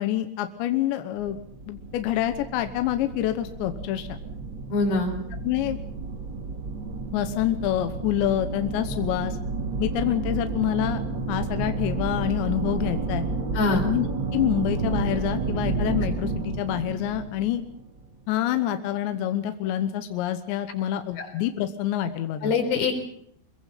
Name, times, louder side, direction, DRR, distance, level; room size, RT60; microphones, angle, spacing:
voice 1, 0.0-1.4 1.7-4.1 5.4-5.8 7.1-9.4 9.8-11.0 11.3-13.2 13.7-14.1 14.3-17.6 18.3-22.5, left 12 dB, 75° left, 8 dB, 3.2 m, -27 dB
sound 1, 1.2-18.2, right 3 dB, 45° right, 1.5 m, -31 dB
voice 2, 4.7-5.1 13.5-13.8 21.2-21.3 22.4-23.0, left 3 dB, 55° left, 3 dB, 5.8 m, -24 dB
26.0 x 22.0 x 5.9 m, 0.68 s
omnidirectional pair, 5.4 m